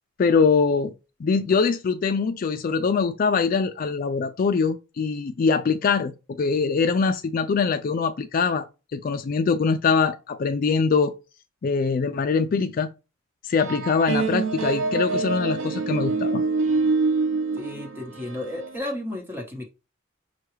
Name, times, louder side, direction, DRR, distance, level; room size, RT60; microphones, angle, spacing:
voice 1, 0.2-0.9 1.2-6.1 6.4-8.6 8.9-11.1 11.6-12.9 13.5-16.4, left 5 dB, 45° left, 0.3 m, -23 dB
sound 1, 13.6-18.8, right 4 dB, 80° right, 0.6 m, -25 dB
voice 2, 17.5-19.7, left 1 dB, 10° right, 1.0 m, -33 dB
5.7 x 2.3 x 3.1 m
head